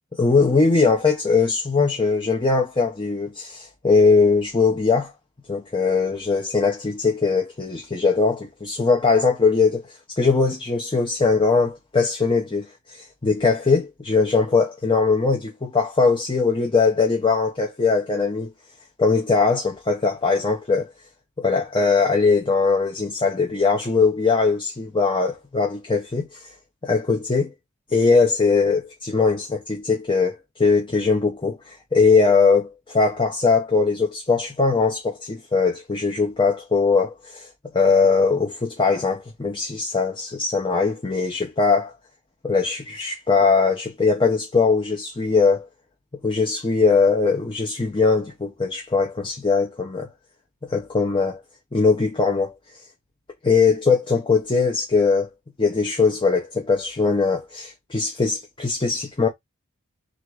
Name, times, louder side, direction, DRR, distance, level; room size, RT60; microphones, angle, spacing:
voice 1, 0.1-5.1 5.5-9.8 10.2-18.5 19.0-20.9 21.4-26.5 26.8-27.5 27.9-37.5 37.7-41.9 42.4-45.7 46.2-50.1 50.6-51.4 51.7-52.5 53.4-55.3 55.6-59.3, left 4 dB, 20° left, 0.8 m, -20 dB
3.6 x 2.6 x 4.6 m
head